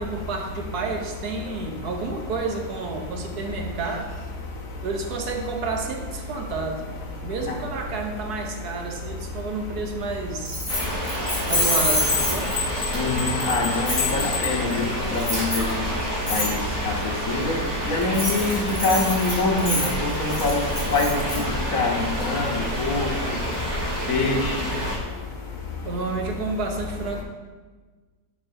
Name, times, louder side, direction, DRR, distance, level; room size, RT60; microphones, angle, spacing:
voice 1, 0.0-4.1 4.8-6.9 7.2-10.8 11.5-12.5 25.8-27.2, right 4 dB, 70° right, 2 dB, 1.3 m, -30 dB
Keys jangling, 10.5-12.8 13.9-14.1 15.2-15.7 16.3-16.5 18.0-21.4, left 1 dB, 15° left, 2.2 m, -26 dB
sound 1, 10.7-25.0, equal, 85° right, 3.1 m, -28 dB
sound 2, 11.3-15.2, left 7 dB, 85° left, 1.3 m, -32 dB
voice 2, 12.9-14.9 15.1-15.6 16.3-16.6 17.3-17.5 17.9-19.9 20.2-20.6 20.9-21.2 21.7-21.9 22.2-23.1 24.1-24.7, left 3 dB, 60° left, 1 dB, 1.1 m, -24 dB
9.8 x 5.6 x 2.6 m, 1.4 s
omnidirectional pair, 1.9 m